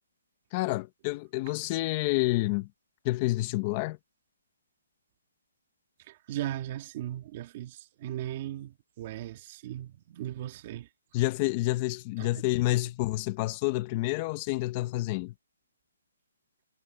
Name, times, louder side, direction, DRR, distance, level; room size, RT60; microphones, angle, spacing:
voice 1, 0.5-2.7 3.0-4.0 11.1-15.3, left 19 dB, 20° left, 0.7 m, -28 dB
voice 2, 6.1-10.9 12.2-12.3, right 13 dB, 30° right, 1.6 m, -37 dB
hypercardioid pair, 170°, 0 cm